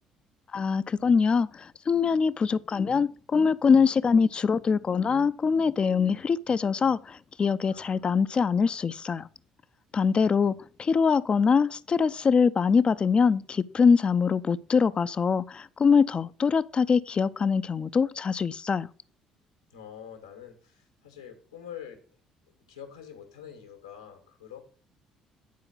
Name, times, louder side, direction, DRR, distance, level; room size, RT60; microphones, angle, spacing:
voice 1, 0.5-9.3 9.9-18.9, left 5 dB, 35° left, 0.6 m, -23 dB
voice 2, 7.7-8.5 9.9-10.5 19.7-22.0 22.7-24.6, left 9 dB, 90° left, 2.0 m, -46 dB
10.5 x 4.8 x 6.2 m
hypercardioid pair, 50°, 3 cm